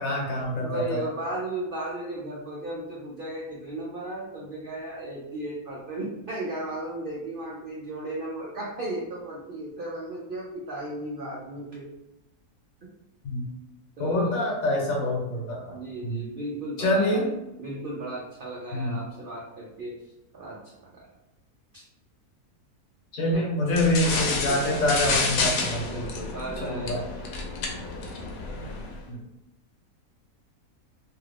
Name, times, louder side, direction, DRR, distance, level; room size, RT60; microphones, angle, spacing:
voice 1, 0.0-1.0 13.2-13.5 14.0-15.7 16.0-16.2 16.8-17.3 18.7-19.0 23.1-25.8 26.6-27.0 29.1-29.2, left 1 dB, 65° left, -1 dB, 1.3 m, -26 dB
voice 2, 0.6-11.9 14.0-14.4 15.7-17.2 17.6-19.9 20.3-21.0 21.7-21.8 23.3-23.5 24.4-24.8 25.8-27.0, right 1 dB, 80° right, -4 dB, 0.4 m, -35 dB
sound 1, 23.7-29.0, left 3 dB, 90° left, 1.2 m, -29 dB
2.9 x 2.3 x 3.2 m, 0.92 s
omnidirectional pair, 1.6 m